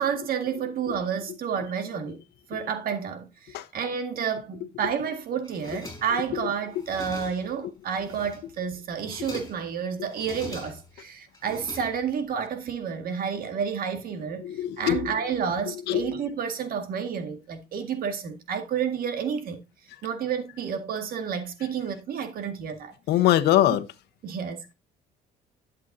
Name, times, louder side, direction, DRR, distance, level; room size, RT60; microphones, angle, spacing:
voice 1, 0.0-2.2 2.5-14.5 14.8-19.6 20.0-23.0 24.2-24.6, right 7 dB, 60° right, 1.9 m, -30 dB
sound 1, 5.4-6.3 6.7-7.6 8.0-8.6 8.9-9.7 10.1-11.0 11.3-12.3, left 2 dB, 20° left, 5.3 m, -42 dB
voice 2, 14.4-15.1 15.9-16.2 23.1-23.8, left 13 dB, 80° left, 1.1 m, -22 dB
11.5 x 8.1 x 2.7 m
cardioid pair, 110°, 17 cm